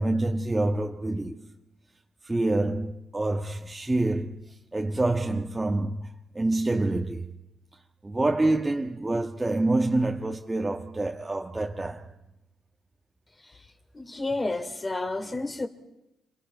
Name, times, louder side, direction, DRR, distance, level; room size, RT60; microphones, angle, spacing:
voice 1, 0.0-1.5 2.2-6.1 6.3-7.4 8.0-12.1, right 2 dB, 20° right, 1.5 m, -27 dB
voice 2, 13.9-15.7, left 2 dB, 25° left, 3.2 m, -30 dB
29.0 x 25.0 x 4.6 m
hypercardioid pair, 45°, 0 cm